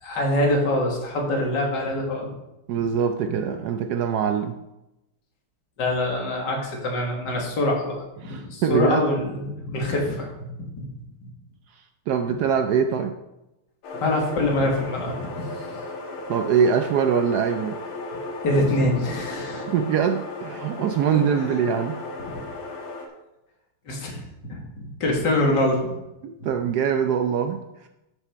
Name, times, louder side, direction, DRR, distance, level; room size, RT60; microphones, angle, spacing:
voice 1, 0.0-2.3 3.2-3.7 5.8-10.9 11.2-11.3 14.0-15.5 18.4-19.6 21.1-21.2 22.3-22.4 23.9-26.0 26.4-26.5, left 1 dB, 55° left, -1 dB, 2.5 m, -25 dB
voice 2, 2.7-4.6 8.2-9.0 11.8-13.2 16.3-17.8 19.7-22.0 26.2-27.9, right 7 dB, 85° right, 7 dB, 0.8 m, -23 dB
sound 1, 13.8-23.1, left 2 dB, 75° left, 2.2 m, -35 dB
12.5 x 6.2 x 4.4 m, 0.94 s
omnidirectional pair, 2.4 m